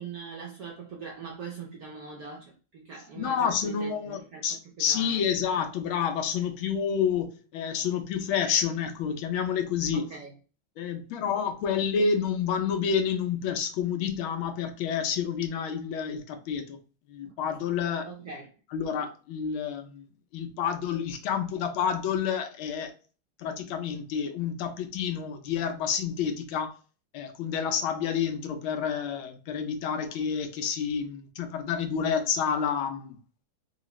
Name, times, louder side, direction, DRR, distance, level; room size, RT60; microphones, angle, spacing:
voice 1, 0.0-4.4 4.8-5.2 9.9-10.3 11.7-11.8 17.2-17.6 18.1-18.5, right 5 dB, 75° right, 0.8 m, -42 dB
voice 2, 3.2-10.1 10.8-16.8 17.1-18.1 18.7-20.0 20.3-22.9 23.4-26.7 27.1-33.2, left 7 dB, 80° left, 1.5 m, -29 dB
3.9 x 2.4 x 3.0 m
omnidirectional pair, 2.2 m